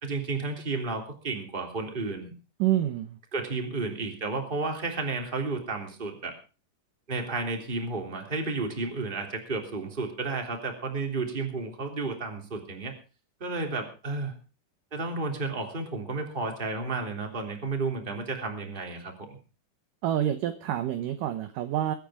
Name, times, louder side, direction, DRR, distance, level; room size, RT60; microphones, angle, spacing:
voice 1, 0.0-2.3 3.3-6.3 7.1-12.9 13.4-14.3 14.9-19.1, right 3 dB, 15° right, 3 dB, 2.9 m, -32 dB
voice 2, 2.6-3.2 20.0-21.9, right 11 dB, 70° right, 9 dB, 2.1 m, -27 dB
23.0 x 9.4 x 5.0 m, 0.34 s
omnidirectional pair, 4.9 m